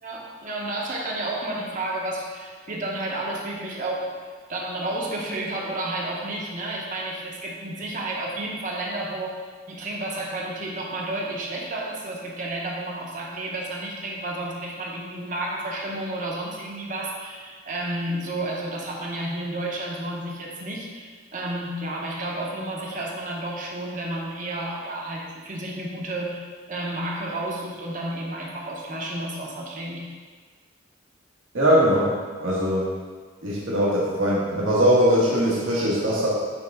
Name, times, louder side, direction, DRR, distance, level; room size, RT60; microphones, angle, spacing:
voice 1, 0.0-4.2 4.5-9.4 9.7-30.1, right 1 dB, 40° right, -3 dB, 1.0 m, -31 dB
voice 2, 31.5-32.1 32.4-32.9 33.4-36.3, equal, 80° right, -7 dB, 1.5 m, -21 dB
8.8 x 3.7 x 3.6 m, 1.5 s
head